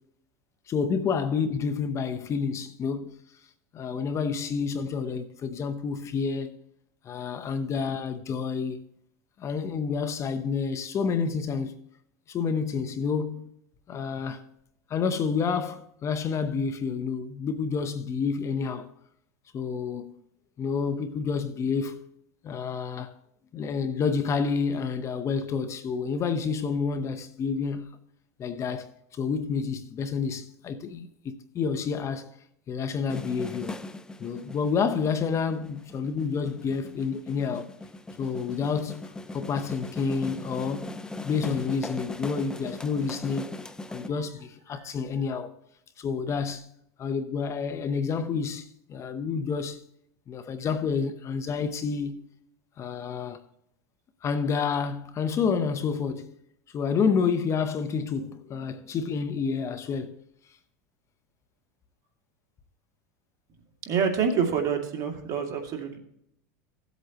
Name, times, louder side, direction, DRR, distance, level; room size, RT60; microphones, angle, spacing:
voice 1, 0.7-3.2 3.7-6.6 7.0-8.8 9.4-11.8 12.3-13.5 13.9-14.4 14.9-18.9 19.5-20.2 20.6-22.1 22.4-23.1 23.5-28.0 28.4-32.3 32.7-33.7 34.2-37.7 38.2-40.9 41.2-43.5 43.9-45.5 46.0-46.7 47.0-49.8 50.3-52.3 52.8-53.4 54.2-56.4 56.7-60.2, left 5 dB, 35° left, 0.9 m, -29 dB
sound 1, 33.1-44.1, left 2 dB, 10° left, 0.6 m, -40 dB
voice 2, 63.8-66.0, right 6 dB, 40° right, 2.3 m, -27 dB
16.0 x 8.2 x 2.9 m
supercardioid pair, 115°, 9 cm